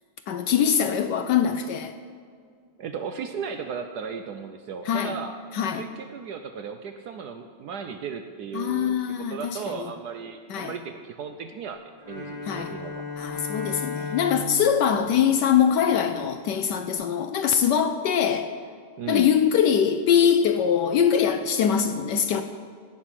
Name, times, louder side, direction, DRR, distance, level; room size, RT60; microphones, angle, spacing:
voice 1, 0.3-1.9 4.9-5.2 5.5-5.8 8.5-9.9 10.5-10.7 12.5-12.7 13.2-18.5 19.1-22.4, left 8 dB, 70° left, 8 dB, 1.1 m, -23 dB
voice 2, 2.8-5.4 5.8-11.8 12.1-13.1 19.0-19.3, right 6 dB, 70° right, 7 dB, 1.0 m, -36 dB
Bowed string instrument, 12.0-16.2, left 4 dB, 15° right, 2.6 m, -36 dB
16.5 x 6.6 x 5.8 m, 2.1 s
omnidirectional pair, 2.2 m